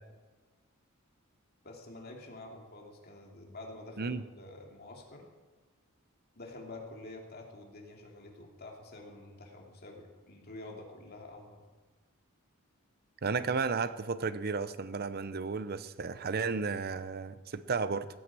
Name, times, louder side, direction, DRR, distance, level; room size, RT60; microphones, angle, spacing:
voice 1, 1.6-5.2 6.4-11.6, left 2 dB, 45° left, 1 dB, 2.8 m, -48 dB
voice 2, 13.2-18.1, right 4 dB, 45° right, 14 dB, 0.7 m, -33 dB
16.0 x 9.3 x 7.6 m, 1.3 s
head